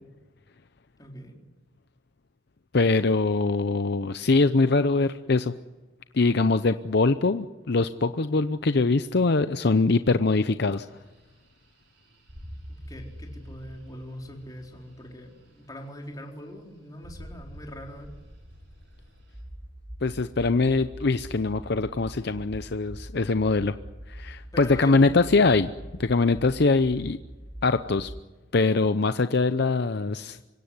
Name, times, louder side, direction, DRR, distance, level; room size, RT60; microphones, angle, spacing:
voice 1, 1.0-1.4 12.7-18.1 24.5-25.3, equal, 20° left, 1 dB, 4.2 m, -42 dB
voice 2, 2.7-5.5 6.1-10.9 20.0-23.7 24.1-25.7 26.0-27.2 27.6-28.1 28.5-30.4, left 3 dB, 60° left, 11 dB, 0.7 m, -23 dB
sound 1, 10.8-19.4, equal, 75° right, 6.7 m, -47 dB
sound 2, 19.3-28.2, equal, 15° right, 0.9 m, -43 dB
25.5 x 17.0 x 9.7 m, 1.2 s
head